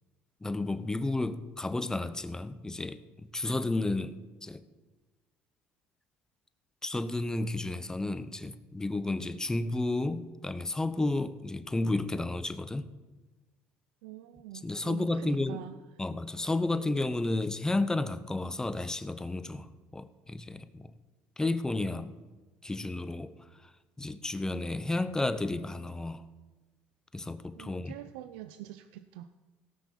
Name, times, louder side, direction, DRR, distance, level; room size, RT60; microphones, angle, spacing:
voice 1, 0.4-4.6 6.8-12.9 14.6-15.6 16.0-20.9 21.4-22.2 22.6-23.3 23.6-23.7 24.0-26.2 27.1-28.0, left 2 dB, 10° left, 13 dB, 0.9 m, -32 dB
voice 2, 14.0-15.7 27.6-29.3, right 13 dB, 90° right, 11 dB, 0.6 m, -45 dB
17.5 x 5.9 x 7.1 m, 1.2 s
supercardioid pair, 90°, 5 cm